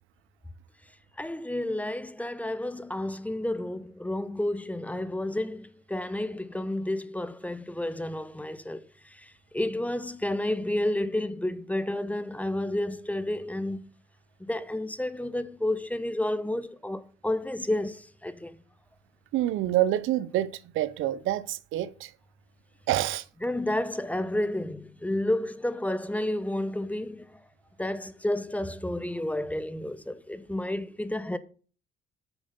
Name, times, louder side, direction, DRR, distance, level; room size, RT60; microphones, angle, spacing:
voice 1, 1.2-13.9 14.4-18.5 23.4-27.4 27.8-31.4, left 1 dB, 5° left, 0.7 m, -31 dB
voice 2, 19.3-22.1 22.9-23.2, right 13 dB, 90° right, 0.7 m, -27 dB
8.1 x 7.1 x 5.3 m
cardioid pair, 90°, 20 cm